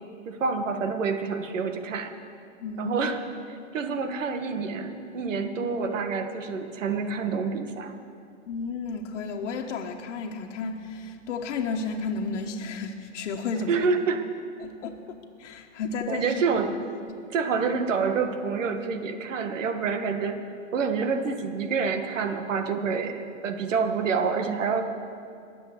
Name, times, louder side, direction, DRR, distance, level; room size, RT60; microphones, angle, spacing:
voice 1, 0.3-2.2 2.8-3.2 3.5-7.9 13.7-14.2 16.1-17.0 17.3-20.4 20.7-24.8, right 5 dB, 80° right, 6 dB, 1.7 m, -27 dB
voice 2, 2.6-2.9 8.5-13.8 14.6-16.4 17.1-17.2, left 4 dB, 70° left, 2 dB, 1.4 m, -32 dB
21.0 x 7.6 x 7.8 m, 2.4 s
hypercardioid pair, 140°, 38 cm